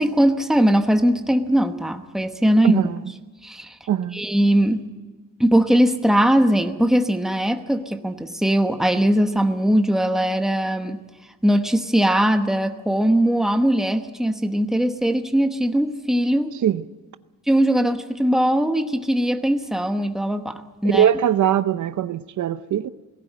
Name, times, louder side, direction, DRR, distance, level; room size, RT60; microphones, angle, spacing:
voice 1, 0.0-2.8 3.4-3.7 4.1-4.9 5.4-11.0 11.4-16.5 17.5-21.1, right 1 dB, ahead, 1.0 m, -20 dB
voice 2, 2.6-3.0 3.9-4.2 16.6-16.8 20.9-22.9, right 10 dB, 70° right, 0.7 m, -21 dB
19.0 x 16.5 x 9.2 m
wide cardioid pair, 155°, 31 cm